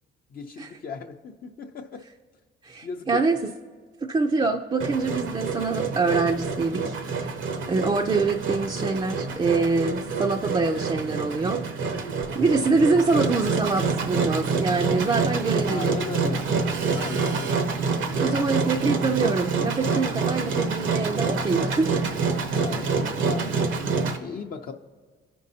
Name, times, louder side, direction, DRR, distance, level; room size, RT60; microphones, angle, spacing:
voice 1, 0.3-2.1 2.8-3.2 12.5-12.8 15.6-16.5 16.9-17.7 22.5-24.7, left 5 dB, 50° left, 2 dB, 0.6 m, -37 dB
voice 2, 2.6-3.4 4.0-7.4 7.7-11.9 12.3-16.0 18.2-22.0, right 3 dB, 25° right, 3 dB, 0.4 m, -25 dB
Engine, 4.8-24.2, right 4 dB, 75° right, 0.9 m, -27 dB
15.5 x 5.3 x 2.8 m, 1.5 s
cardioid pair, 90°, 20 cm